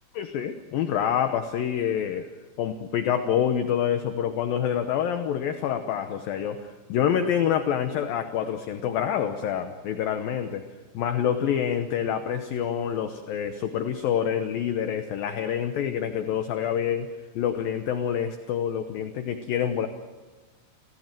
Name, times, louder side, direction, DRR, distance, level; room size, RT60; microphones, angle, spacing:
voice 1, 0.1-2.3 2.6-10.6 10.9-17.1 17.4-19.9, left 9 dB, 75° left, 7 dB, 2.2 m, -27 dB
30.0 x 16.5 x 7.6 m, 1.3 s
omnidirectional pair, 5.3 m